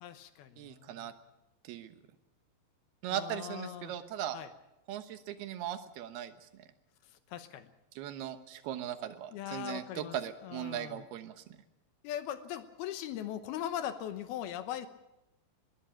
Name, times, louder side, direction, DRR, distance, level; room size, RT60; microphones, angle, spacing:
voice 1, 0.0-1.1 3.1-3.9 4.3-4.5 7.0-7.7 9.3-10.2 10.4-11.0 12.0-14.9, left 11 dB, 75° left, 11 dB, 2.5 m, -40 dB
voice 2, 0.6-1.1 1.6-2.0 3.0-4.4 4.9-6.7 8.0-11.4, right 11 dB, 70° right, 10 dB, 2.8 m, -39 dB
21.0 x 16.0 x 8.8 m, 0.92 s
omnidirectional pair, 5.3 m